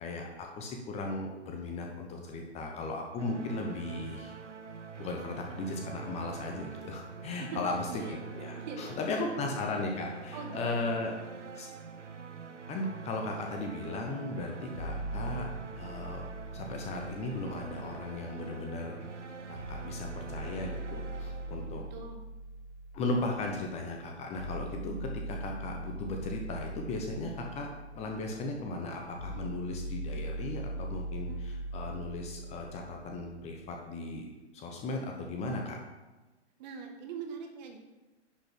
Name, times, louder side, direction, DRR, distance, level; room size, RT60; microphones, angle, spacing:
voice 1, 0.0-4.4 5.0-11.1 11.5-11.7 12.7-15.4 15.7-16.2 16.5-19.0 19.5-21.8 22.9-27.7 28.0-34.2 34.5-35.8, left 2 dB, 20° left, 2 dB, 1.1 m, -36 dB
sound 1, 3.2-22.1, right 5 dB, 85° right, 0.9 m, -44 dB
voice 2, 7.4-8.2 8.6-9.5 10.3-10.9 21.6-22.2 31.3-31.4 36.6-37.8, right 5 dB, 40° right, 3 dB, 1.8 m, -43 dB
sound 2, 14.7-18.7 19.5-33.6, right 1 dB, 90° left, 1.4 m, -41 dB
10.5 x 5.3 x 6.0 m, 1.1 s
figure-of-eight pair, 120°, 35 cm